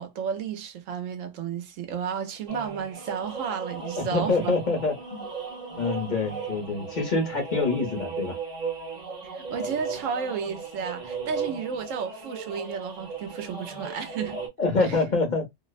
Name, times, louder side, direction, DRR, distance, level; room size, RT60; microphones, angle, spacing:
voice 1, 0.0-4.5 9.2-14.5 14.8-15.0, right 6 dB, 90° right, 1.0 m, -32 dB
sound 1, 2.5-14.5, right 5 dB, 40° right, 1.0 m, -36 dB
voice 2, 3.8-5.2 5.8-8.4 14.6-15.5, left 3 dB, 40° left, 0.9 m, -26 dB
2.6 x 2.0 x 2.3 m
omnidirectional pair, 1.3 m